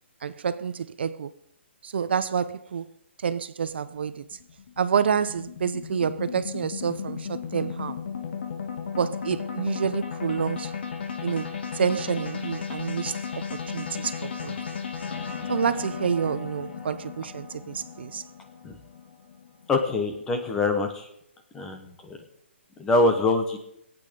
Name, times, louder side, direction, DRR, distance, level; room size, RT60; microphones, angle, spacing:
voice 1, 0.2-1.3 1.8-2.9 3.2-4.2 4.8-8.0 8.9-10.7 11.2-13.2 13.5-14.6 15.5-18.2, right 7 dB, 60° right, 0.6 m, -28 dB
sound 1, 3.7-20.1, left 6 dB, 55° left, 2.3 m, -35 dB
voice 2, 19.7-21.1 21.5-21.9 22.8-23.6, left 2 dB, 10° left, 1.1 m, -24 dB
19.5 x 8.7 x 5.2 m
hypercardioid pair, 170°, 7 cm